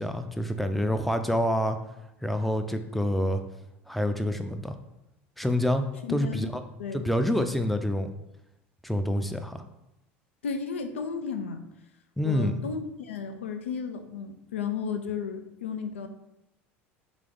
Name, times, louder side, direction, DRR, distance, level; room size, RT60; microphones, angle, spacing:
voice 1, 0.0-1.8 2.2-3.4 3.9-4.8 5.4-5.8 6.1-6.6 6.9-8.1 8.8-9.6 12.2-12.6, left 1 dB, ahead, 7 dB, 0.4 m, -27 dB
voice 2, 6.0-6.5 6.8-7.1 10.4-11.6 12.2-16.1, left 6 dB, 90° left, 7 dB, 0.4 m, -33 dB
3.3 x 3.0 x 3.8 m, 0.88 s
hypercardioid pair, 80°, 7 cm